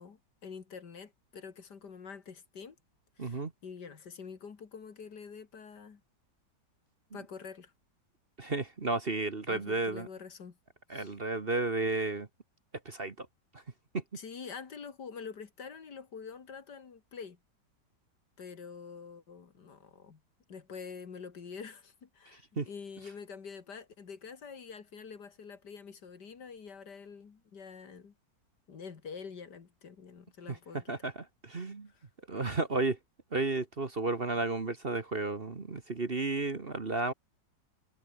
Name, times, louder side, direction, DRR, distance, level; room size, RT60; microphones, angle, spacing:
voice 1, 0.0-2.8 3.2-6.0 7.1-7.7 9.5-10.6 10.9-11.1 14.1-17.4 18.4-20.2 20.5-28.1 28.7-30.9 31.9-32.1, left 6 dB, 65° left, 2.6 m, -46 dB
voice 2, 3.2-3.5 8.4-10.1 10.9-12.3 12.8-13.3 13.9-14.0 22.6-22.7 30.9-31.9 32.3-33.0 33.3-37.1, right 3 dB, 35° right, 1.6 m, -32 dB
omnidirectional pair, 2.0 m